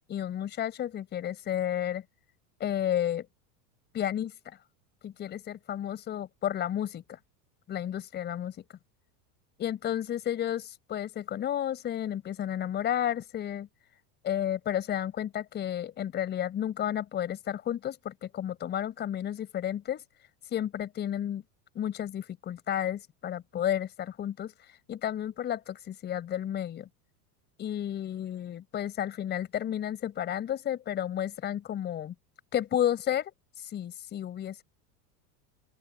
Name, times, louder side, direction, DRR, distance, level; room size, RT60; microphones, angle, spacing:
voice 1, 0.1-2.0 2.6-3.3 3.9-4.3 5.0-7.2 7.7-8.5 9.6-13.7 14.2-20.0 20.5-21.4 21.7-24.5 24.9-26.9 27.6-32.1 32.5-34.6, left 10 dB, 20° left, 4.7 m, -32 dB
open air
supercardioid pair, 170°, 45 cm